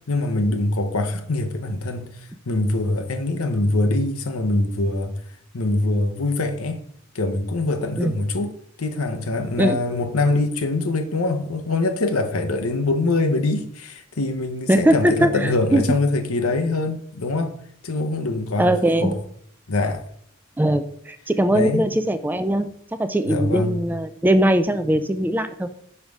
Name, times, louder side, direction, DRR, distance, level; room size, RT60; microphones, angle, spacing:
voice 1, 0.1-5.2 5.5-6.8 7.1-8.5 8.8-18.7 19.0-19.2 19.7-20.0 21.5-21.8 23.3-23.8, left 2 dB, 80° left, 0.8 m, -23 dB
voice 2, 14.7-15.8 18.6-19.1 20.6-22.7 23.0-25.8, right 1 dB, 10° right, 0.3 m, -20 dB
5.5 x 4.6 x 5.3 m
head